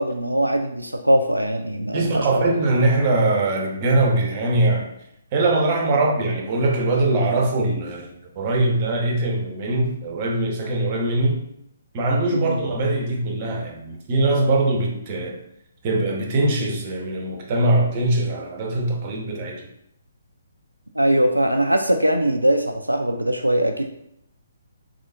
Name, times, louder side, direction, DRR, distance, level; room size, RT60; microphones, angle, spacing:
voice 1, 0.0-2.5 5.9-6.0 12.3-12.6 21.0-23.8, right 1 dB, 85° right, 4 dB, 0.3 m, -21 dB
voice 2, 1.9-4.9 5.3-11.4 11.9-15.4 15.8-19.6, right 2 dB, 30° right, 1 dB, 0.7 m, -22 dB
3.7 x 3.3 x 2.6 m, 0.76 s
figure-of-eight pair, 135°, 0 cm